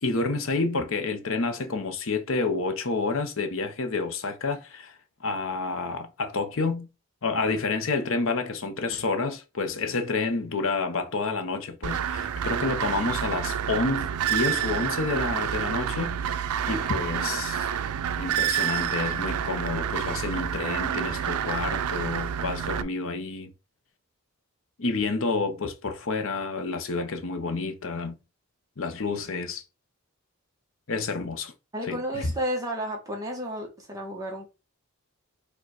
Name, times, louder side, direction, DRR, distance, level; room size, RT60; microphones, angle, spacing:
voice 1, 0.0-5.0 5.2-6.9 7.2-16.2 16.7-17.8 18.2-23.5 24.8-28.2 28.8-29.6 30.9-31.5 31.9-32.3, left 3 dB, 60° left, 0.8 m, -29 dB
sound 1, 11.8-22.8, right 9 dB, 85° right, 0.4 m, -28 dB
voice 2, 31.7-34.5, equal, 15° right, 1.0 m, -32 dB
4.7 x 2.4 x 4.7 m
head